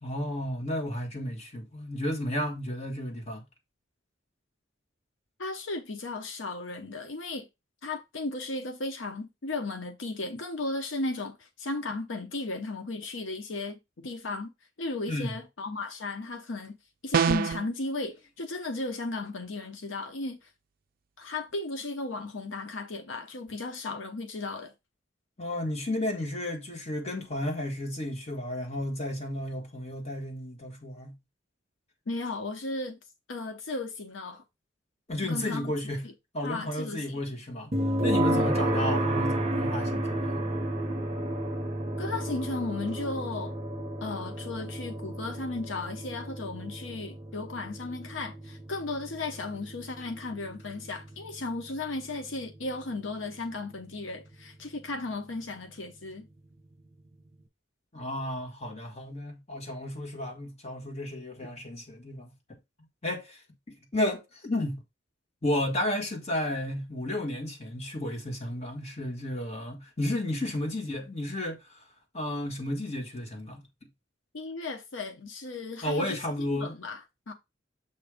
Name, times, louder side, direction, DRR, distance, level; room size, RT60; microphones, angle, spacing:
voice 1, 0.0-3.4 15.1-15.4 25.4-31.1 35.1-36.0 36.3-37.8 38.0-40.4 57.9-62.3 63.0-63.4 63.7-64.8 65.4-71.9 72.1-73.6 75.8-76.7, left 1 dB, 35° left, 1.6 m, -33 dB
voice 2, 5.4-7.5 7.8-14.5 14.8-16.8 17.0-20.5 21.2-24.7 32.1-33.0 33.3-34.4 35.2-35.7 36.0-36.1 36.4-37.2 38.3-38.5 42.0-43.6 44.0-56.3 74.3-76.2 76.5-77.3, left 2 dB, 85° left, 0.8 m, -35 dB
sound 1, 17.1-17.7, right 6 dB, 50° right, 0.4 m, -24 dB
sound 2, 37.7-52.7, right 1 dB, 35° right, 1.0 m, -32 dB
7.4 x 2.6 x 4.9 m
head